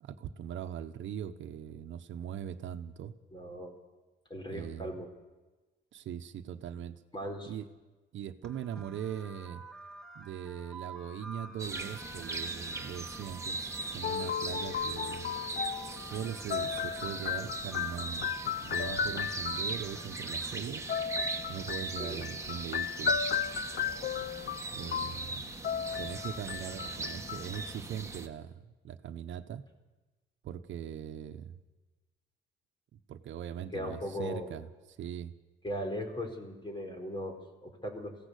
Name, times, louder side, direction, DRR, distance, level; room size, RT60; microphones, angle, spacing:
voice 1, 0.0-3.1 4.5-4.9 5.9-7.0 7.5-7.7 8.1-9.6 10.1-15.3 16.0-18.3 18.6-20.8 21.5-23.2 24.7-25.4 26.0-29.6 30.4-31.6 33.1-34.7 35.0-35.3, right 9 dB, 75° right, 9 dB, 1.2 m, -40 dB
voice 2, 3.3-3.7 4.3-5.1 7.1-7.5 8.8-8.9 22.0-22.3 33.7-34.5 35.6-38.2, equal, 25° left, 4 dB, 4.6 m, -38 dB
sound 1, 8.4-20.6, right 3 dB, 5° left, 2.6 m, -50 dB
sound 2, 11.6-28.3, right 3 dB, 15° right, 2.1 m, -39 dB
sound 3, 14.0-19.9 20.9-27.8, left 7 dB, 55° left, 0.7 m, -35 dB
22.0 x 16.5 x 8.4 m, 1.2 s
cardioid pair, 90°, 20 cm